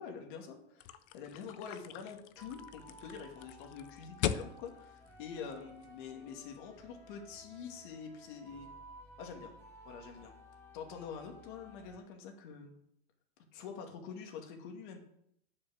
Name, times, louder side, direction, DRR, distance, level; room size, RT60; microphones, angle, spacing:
voice 1, 0.0-8.7 9.2-9.5 9.8-10.3 10.7-12.7 13.5-15.0, left 6 dB, 50° left, 3 dB, 2.4 m, -46 dB
sound 1, 0.8-6.1, left 11 dB, 25° left, 0.4 m, -41 dB
sound 2, 2.4-12.0, equal, 5° left, 1.6 m, -56 dB
9.8 x 6.5 x 6.4 m, 0.74 s
supercardioid pair, 160°, 32 cm